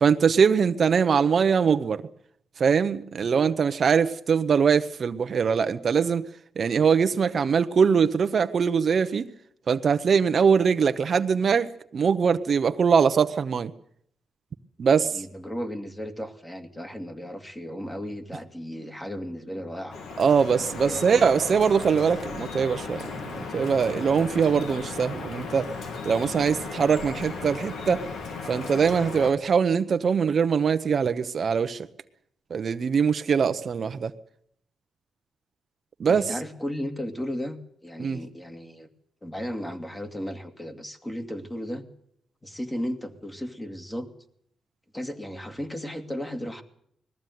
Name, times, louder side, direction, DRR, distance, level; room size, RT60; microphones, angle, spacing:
voice 1, 0.0-2.0 2.6-6.2 6.6-9.3 9.7-13.7 14.8-15.1 20.2-25.7 26.0-28.0 28.5-31.9 32.5-34.1 36.0-36.3 38.0-38.2, right 6 dB, 50° right, 0.8 m, -22 dB
voice 2, 15.1-20.0 20.8-21.0 24.2-24.3 36.1-38.9 39.2-41.8 42.4-44.1 44.9-46.6, equal, 15° left, 2.3 m, -35 dB
Drip, 19.9-29.3, left 4 dB, 85° left, 2.5 m, -36 dB
20.5 x 14.5 x 9.4 m
cardioid pair, 100°, 0 cm